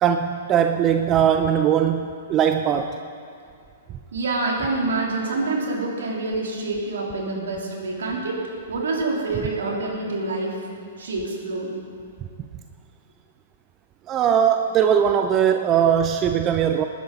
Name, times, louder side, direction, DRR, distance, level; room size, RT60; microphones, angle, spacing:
voice 1, 0.0-3.0 14.1-16.8, right 8 dB, 30° right, 7 dB, 0.6 m, -20 dB
voice 2, 4.1-8.4 8.7-10.6 11.0-11.7 14.5-14.6, right 2 dB, 70° right, -2 dB, 3.2 m, -26 dB
19.5 x 10.5 x 4.1 m, 2.3 s
hypercardioid pair, 115°, 0 cm